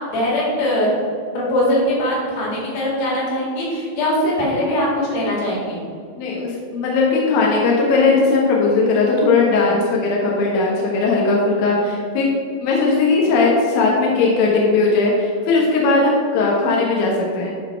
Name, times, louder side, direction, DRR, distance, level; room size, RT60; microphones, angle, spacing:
voice 1, 0.1-0.9 1.3-5.8, left 1 dB, 55° left, -5 dB, 3.5 m, -21 dB
voice 2, 6.2-12.3 12.6-17.5, left 3 dB, 75° left, -3 dB, 2.2 m, -18 dB
12.0 x 4.0 x 4.5 m, 2.3 s
omnidirectional pair, 5.6 m